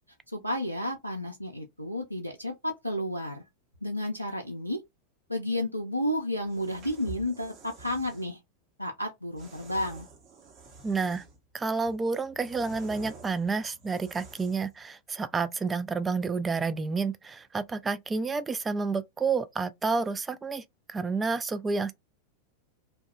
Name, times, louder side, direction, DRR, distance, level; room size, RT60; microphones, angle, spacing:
voice 1, 0.3-3.4 3.8-4.8 5.3-8.4 8.8-10.1, left 1 dB, 90° left, 0.4 m, -32 dB
sound 1, 6.4-8.3 9.4-11.4 11.8-14.7, right 3 dB, 35° right, 0.9 m, -48 dB
voice 2, 10.8-11.2 11.5-21.9, right 4 dB, 15° right, 0.3 m, -30 dB
2.7 x 2.2 x 2.2 m
figure-of-eight pair, 90°, 0 cm